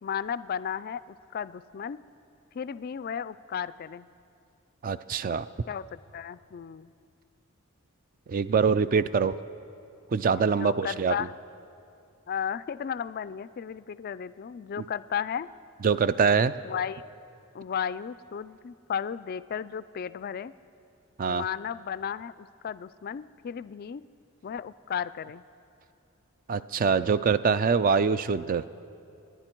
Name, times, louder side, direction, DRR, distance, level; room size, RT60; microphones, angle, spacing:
voice 1, 0.0-2.0 2.5-4.1 5.7-6.9 8.7-9.1 10.4-11.3 12.3-15.5 16.6-17.0 17.5-20.5 21.3-24.0 24.4-25.4, left 8 dB, 45° left, 17 dB, 0.3 m, -34 dB
voice 2, 4.8-5.5 8.3-9.3 10.1-11.1 15.8-16.5 21.2-21.4 26.5-28.6, right 5 dB, 40° right, 15 dB, 0.3 m, -24 dB
29.0 x 10.5 x 4.5 m, 2.6 s
head